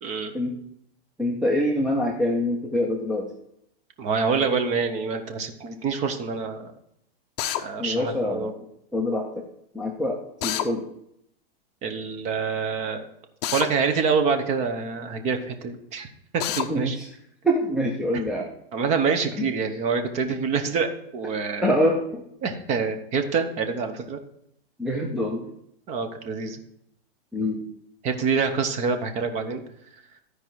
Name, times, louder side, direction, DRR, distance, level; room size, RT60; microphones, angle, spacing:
voice 1, 0.0-0.3 4.0-6.7 7.6-8.5 11.8-13.0 13.5-16.1 16.6-17.0 18.7-21.7 22.4-24.2 25.9-26.6 28.0-29.6, right 5 dB, 25° right, 7 dB, 0.8 m, -26 dB
voice 2, 1.2-3.3 7.8-8.6 8.9-9.4 9.7-10.2 10.4-10.8 16.7-17.1 17.4-18.5 19.4-19.5 21.6-22.2 24.8-25.5 27.3-27.6, left 1 dB, ahead, -1 dB, 0.4 m, -25 dB
Drill, 7.4-7.6 10.4-10.7 13.4-13.7 16.4-16.7, left 12 dB, 45° left, 0.6 m, -27 dB
13.0 x 4.8 x 4.6 m, 0.74 s
supercardioid pair, 155°, 29 cm